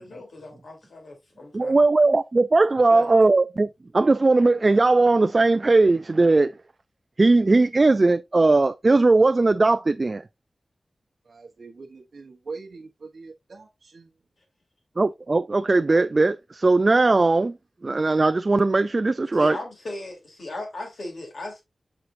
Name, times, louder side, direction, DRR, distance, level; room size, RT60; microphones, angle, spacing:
voice 1, 0.0-1.8 2.9-3.1 19.3-21.6, left 2 dB, 75° left, 3.2 m, -37 dB
voice 2, 1.5-3.7 3.9-6.5 7.2-10.2 15.0-17.5 17.8-19.6, right 3 dB, 40° right, 0.3 m, -19 dB
voice 3, 11.2-14.1, right 4 dB, 70° right, 0.9 m, -42 dB
6.4 x 5.8 x 2.6 m
wide cardioid pair, 95°, 0 cm